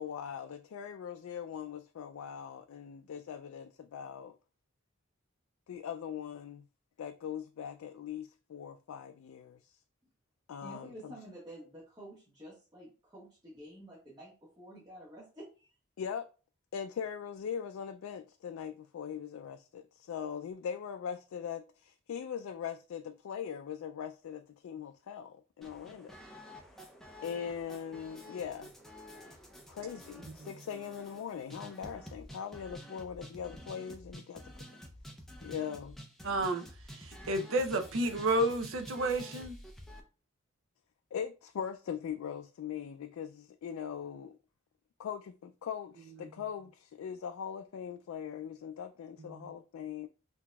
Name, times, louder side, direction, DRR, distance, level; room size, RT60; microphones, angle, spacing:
voice 1, 0.0-4.4 5.7-6.7 7.0-9.8 10.5-11.1 16.0-16.3 16.7-26.2 27.2-28.7 29.7-34.4 35.4-36.0 41.1-44.4 45.0-50.1, left 8 dB, 85° left, 0.3 m, -41 dB
voice 2, 10.6-15.7, right 1 dB, 20° right, 1.4 m, -50 dB
sound 1, 25.6-40.0, equal, ahead, 0.5 m, -50 dB
voice 3, 36.2-36.6 36.9-39.6 49.2-49.5, right 1 dB, 75° right, 0.6 m, -31 dB
5.8 x 2.7 x 2.3 m
head